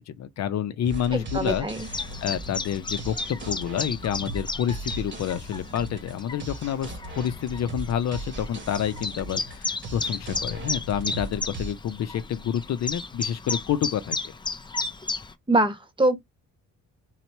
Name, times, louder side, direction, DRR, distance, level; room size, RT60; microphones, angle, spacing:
voice 1, 0.0-14.2, left 9 dB, 60° left, 0.6 m, -29 dB
sound 1, 0.8-11.7, right 2 dB, 40° right, 1.4 m, -38 dB
voice 2, 1.1-1.8 15.5-16.2, right 2 dB, 15° right, 1.1 m, -23 dB
Chirp tweet, 1.8-15.3, left 3 dB, 15° left, 0.5 m, -34 dB
4.0 x 2.9 x 4.5 m
cardioid pair, 90°, 30 cm